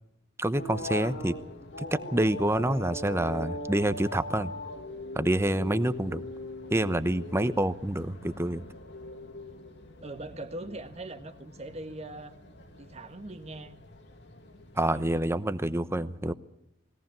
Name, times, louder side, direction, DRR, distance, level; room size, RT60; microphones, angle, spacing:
voice 1, 0.4-1.4 1.8-4.5 5.1-6.2 6.7-8.6 14.8-16.3, right 1 dB, 15° right, 13 dB, 0.8 m, -27 dB
sound 1, 0.5-15.2, left 1 dB, 65° left, 2.6 m, -41 dB
voice 2, 10.0-12.3 12.8-13.8 14.9-15.1, right 2 dB, 35° right, 8 dB, 1.5 m, -41 dB
20.5 x 18.0 x 7.5 m, 0.80 s
head